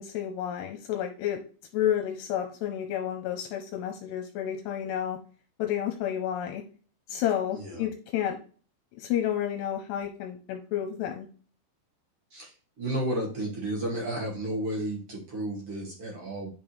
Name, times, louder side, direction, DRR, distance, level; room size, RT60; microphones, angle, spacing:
voice 1, 0.0-1.4 1.7-5.2 5.6-6.6 7.1-8.4 9.0-11.3, left 10 dB, 80° left, 4 dB, 2.8 m, -30 dB
voice 2, 7.5-7.8 12.3-16.5, right 1 dB, 40° right, -3 dB, 2.6 m, -32 dB
9.4 x 5.3 x 3.3 m, 0.39 s
omnidirectional pair, 5.1 m